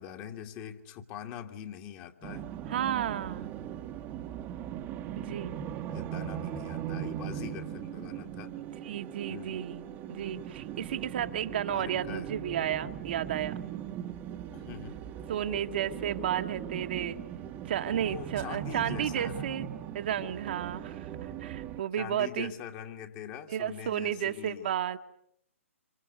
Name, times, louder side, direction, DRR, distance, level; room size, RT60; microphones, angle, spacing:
voice 1, 0.0-2.4 5.9-8.5 9.3-9.6 10.4-10.5 11.7-12.3 14.5-15.0 18.0-19.7 22.0-24.6, left 9 dB, 30° left, 5 dB, 2.2 m, -43 dB
sound 1, 2.2-21.8, right 10 dB, 20° right, 1.3 m, -39 dB
voice 2, 2.7-3.5 5.1-5.6 8.8-9.8 10.1-13.6 15.3-17.2 17.6-19.7 19.9-22.5 23.5-25.0, right 10 dB, 45° right, 6 dB, 1.5 m, -32 dB
26.5 x 26.5 x 8.1 m, 0.72 s
figure-of-eight pair, 125°, 8 cm